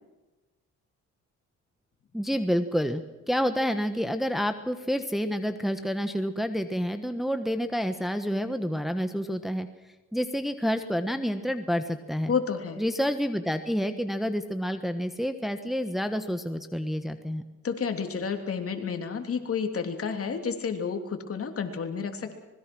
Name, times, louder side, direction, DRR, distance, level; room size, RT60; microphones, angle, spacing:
voice 1, 2.1-9.7 10.1-12.3 12.8-17.4, equal, ahead, 7 dB, 1.3 m, -29 dB
voice 2, 12.3-12.8 17.6-22.3, left 6 dB, 50° left, 5 dB, 3.2 m, -30 dB
25.5 x 21.0 x 6.3 m, 1.2 s
cardioid pair, 90°, 30 cm